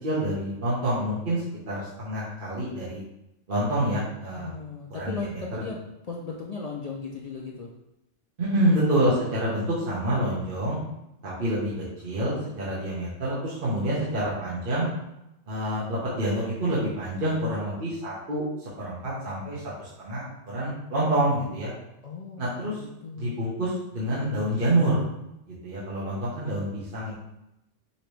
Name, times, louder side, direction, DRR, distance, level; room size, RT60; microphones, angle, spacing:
voice 1, 0.0-3.0 3.5-4.5 4.9-5.4 8.4-10.8 11.2-11.7 12.0-14.9 15.5-18.4 18.8-21.7 22.4-22.8 23.2-25.0 25.6-27.1, right 1 dB, 50° right, -8 dB, 1.2 m, -27 dB
voice 2, 4.3-7.7 22.0-23.4, left 4 dB, 60° left, -2 dB, 0.4 m, -37 dB
5.4 x 2.9 x 3.2 m, 0.88 s
omnidirectional pair, 1.2 m